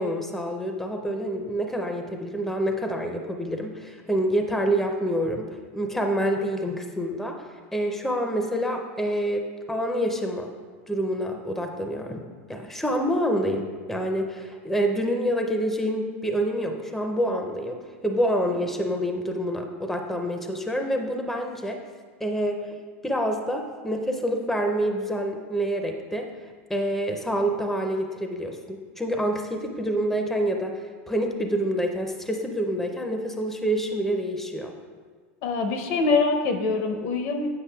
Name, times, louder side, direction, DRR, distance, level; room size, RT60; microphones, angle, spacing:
voice 1, 0.0-5.4 5.7-7.4 7.7-10.5 10.9-12.2 12.5-17.8 18.0-21.8 22.2-22.8 23.0-26.3 26.7-34.7, equal, 5° left, 3 dB, 0.5 m, -27 dB
voice 2, 35.4-37.5, left 4 dB, 65° left, 5 dB, 0.6 m, -24 dB
8.3 x 5.3 x 2.3 m, 1.5 s
supercardioid pair, 110°, 7 cm